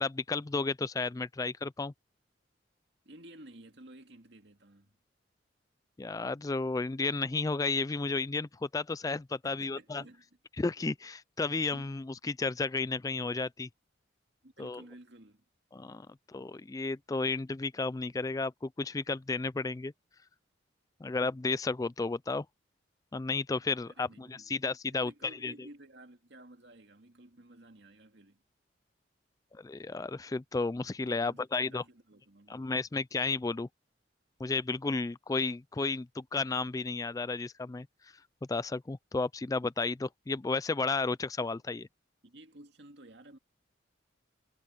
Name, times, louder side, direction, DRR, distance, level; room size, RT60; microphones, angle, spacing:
voice 1, 0.0-1.9 6.0-10.0 10.6-13.7 14.6-14.8 15.7-19.9 21.0-22.5 23.1-25.1 25.4-25.5 29.5-31.8 32.5-33.7 34.4-37.9 38.5-41.9, left 3 dB, 20° left, 0.3 m, -33 dB
voice 2, 3.0-4.9 9.4-10.2 10.6-10.7 11.7-11.9 14.4-15.4 23.9-24.6 24.9-28.4 31.0-32.7 42.2-43.4, right 1 dB, 60° right, 2.4 m, -54 dB
head